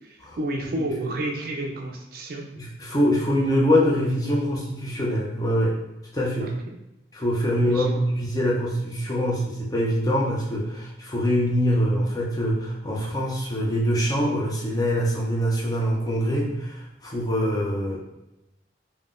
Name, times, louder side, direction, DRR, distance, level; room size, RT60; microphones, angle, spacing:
voice 1, 0.0-2.5 6.4-6.8 7.7-8.2, right 1 dB, 50° right, 1 dB, 0.3 m, -31 dB
voice 2, 2.6-5.8 6.1-6.5 7.1-7.9 8.2-18.0, equal, 20° left, -3 dB, 0.5 m, -24 dB
3.5 x 2.1 x 2.4 m, 0.93 s
head